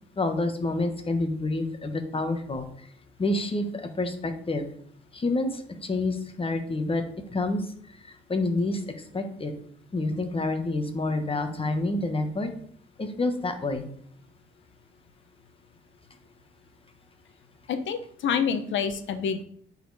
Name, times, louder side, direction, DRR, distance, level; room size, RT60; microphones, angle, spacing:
voice 1, 0.2-2.7 3.2-4.6 5.1-7.0 7.3-7.7 8.3-8.8 9.1-9.5 9.9-12.5 13.0-13.8, left 2 dB, 30° left, 7 dB, 1.3 m, -28 dB
voice 2, 17.7-19.4, left 7 dB, 70° left, 9 dB, 1.0 m, -27 dB
9.3 x 4.3 x 4.1 m, 0.63 s
cardioid pair, 90°, 20 cm